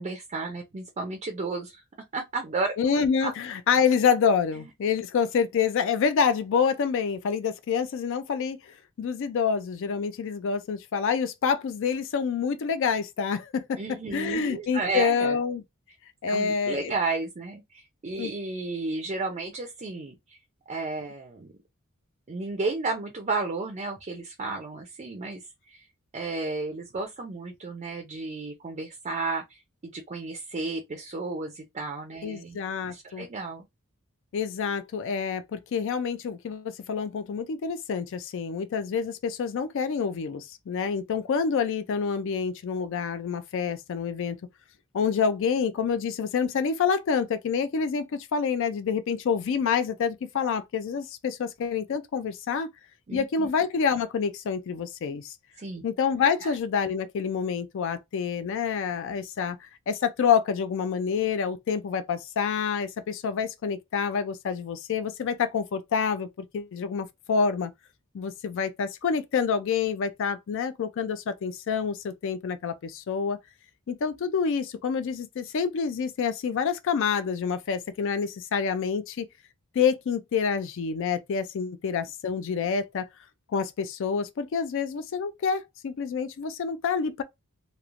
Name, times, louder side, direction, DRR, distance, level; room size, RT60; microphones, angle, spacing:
voice 1, 0.0-1.8 2.1-3.3 13.8-15.4 16.3-20.4 20.7-21.5 22.3-25.9 26.1-32.6 32.9-33.7 53.1-53.5 55.6-55.8 56.4-56.5, right 3 dB, 30° right, 0.4 m, -33 dB
voice 2, 2.8-15.6 16.2-16.9 18.2-18.3 32.2-33.3 34.3-44.4 44.9-52.7 53.1-55.3 55.8-66.3 66.5-67.7 68.1-73.4 73.9-79.3 79.7-83.1 83.5-87.2, left 6 dB, 60° left, 0.3 m, -27 dB
2.9 x 2.0 x 2.4 m
head